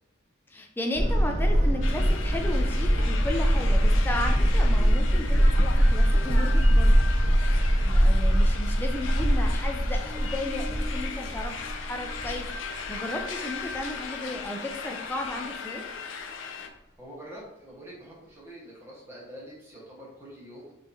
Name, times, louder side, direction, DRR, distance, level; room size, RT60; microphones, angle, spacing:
voice 1, 0.5-7.0 7.8-12.5 12.9-15.8, left 1 dB, 10° left, 2 dB, 0.4 m, -34 dB
sound 1, 0.9-12.9 13.3-13.4 13.7-13.8, equal, 35° right, 0.6 m, -22 dB
sound 2, 1.8-16.7, left 5 dB, 70° left, 0.4 m, -38 dB
voice 2, 17.0-20.7, equal, 10° right, -6 dB, 1.2 m, -45 dB
5.6 x 2.9 x 2.7 m, 0.96 s
head